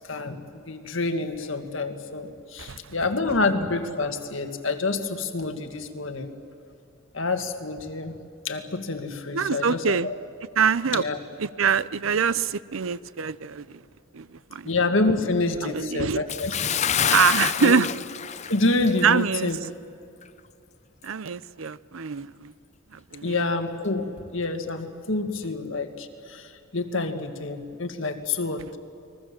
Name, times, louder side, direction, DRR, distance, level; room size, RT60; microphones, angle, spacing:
voice 1, 0.1-6.3 7.1-8.1 8.4-10.2 10.9-11.2 14.6-16.5 17.6-17.8 18.5-19.6 23.2-28.8, left 3 dB, 70° left, 6 dB, 1.9 m, -27 dB
voice 2, 2.6-2.9 9.3-10.1 10.6-11.0 11.4-13.8 14.1-14.7 15.6-16.2 17.1-17.9 19.0-19.5 21.0-22.5 22.9-23.4, right 6 dB, 75° right, 17 dB, 0.6 m, -24 dB
Bathtub (filling or washing) / Splash splatter, 16.3-19.2 19.5-19.7 20.2-20.3, left 8 dB, 35° left, 0.6 m, -27 dB
30.0 x 21.5 x 7.5 m, 2.6 s
head